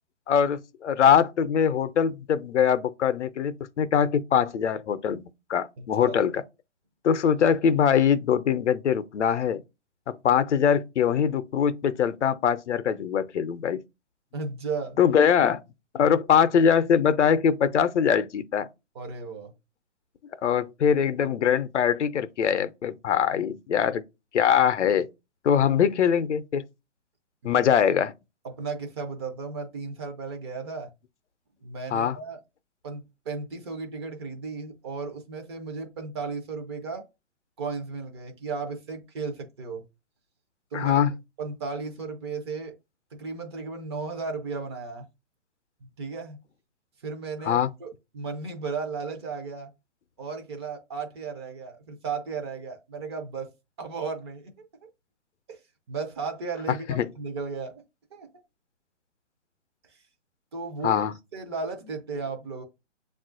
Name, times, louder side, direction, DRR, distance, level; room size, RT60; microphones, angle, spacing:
voice 1, 0.3-5.2 5.5-6.4 7.0-9.6 10.1-13.8 15.0-15.6 15.9-18.7 20.4-24.0 24.3-25.1 25.4-26.6 27.4-28.1 31.9-32.2 40.7-41.1 47.5-47.7 57.0-57.1 60.8-61.1, left 8 dB, 70° left, 0.6 m, -22 dB
voice 2, 5.8-6.2 14.3-15.0 18.9-19.5 27.4-27.6 28.4-30.9 31.6-32.4 32.8-37.0 37.6-39.8 40.7-41.0 41.4-42.7 43.1-45.1 46.0-46.4 47.0-49.7 50.2-53.5 53.8-54.6 55.5-55.6 55.9-56.9 57.2-57.8 58.1-58.3 59.9-60.0 60.5-61.0 61.3-62.6, right 4 dB, 20° right, 0.5 m, -35 dB
7.1 x 2.4 x 2.4 m
figure-of-eight pair, 135°, 37 cm